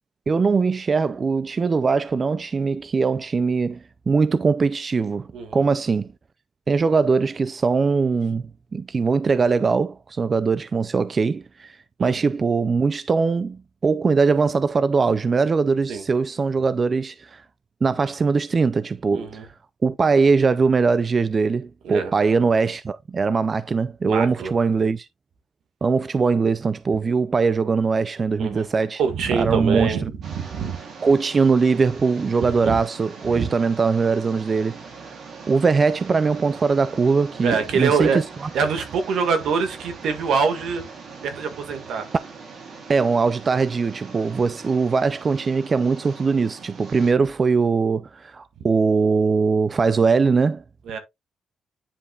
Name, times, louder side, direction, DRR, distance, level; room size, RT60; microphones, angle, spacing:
voice 1, 0.3-6.1 6.7-8.4 8.7-17.4 17.8-19.5 19.8-25.1 25.8-29.0 29.3-30.0 31.0-34.8 35.1-35.2 35.5-38.5 42.9-50.6, right 4 dB, 35° right, 0.4 m, -21 dB
voice 2, 5.3-5.7 12.0-12.3 15.9-16.0 19.1-19.5 21.8-22.1 24.0-24.5 28.4-28.7 29.0-30.8 32.5-32.8 33.3-33.5 37.4-38.2 38.5-40.8 41.2-42.1 50.9-51.0, right 5 dB, 85° right, 1.8 m, -24 dB
sound 1, 30.2-47.1, right 4 dB, 65° right, 3.3 m, -41 dB
9.8 x 5.1 x 2.4 m
cardioid pair, 110°, 0 cm